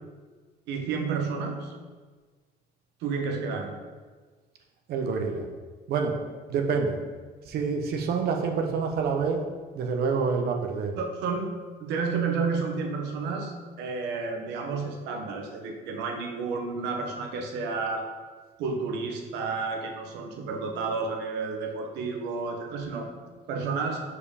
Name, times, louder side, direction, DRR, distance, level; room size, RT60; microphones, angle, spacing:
voice 1, 0.7-1.7 3.0-3.7 11.0-11.5 11.8-18.1 18.6-23.1 23.5-24.0, right 4 dB, 90° right, 3 dB, 1.0 m, -31 dB
voice 2, 4.9-5.5 5.9-6.2 6.5-7.0 7.5-9.4 9.7-11.0, right 5 dB, 70° right, 3 dB, 0.8 m, -27 dB
5.0 x 4.9 x 4.9 m, 1.4 s
cardioid pair, 110°, 17 cm